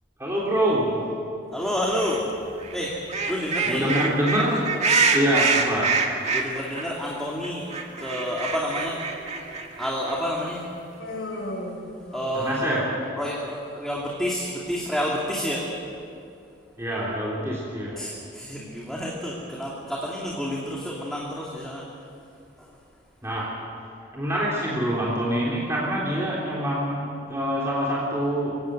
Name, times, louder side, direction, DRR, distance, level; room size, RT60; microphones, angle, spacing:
voice 1, 0.2-1.0 3.6-4.7 5.1-6.0 12.3-12.9 16.8-18.0 23.2-23.6 24.1-28.6, equal, 15° right, -5 dB, 3.5 m, -25 dB
voice 2, 1.5-2.3 2.7-3.9 6.3-9.0 9.8-12.9 13.1-15.8 18.0-22.1 22.6-22.8, equal, 5° left, -4 dB, 2.7 m, -30 dB
sound 1, 1.9-2.2 2.6-6.9 7.2-7.3 7.4-10.2, right 4 dB, 40° right, 2.2 m, -25 dB
Human voice, 11.0-12.7, left 1 dB, 85° left, 4.8 m, -35 dB
24.0 x 17.0 x 9.3 m, 2.6 s
head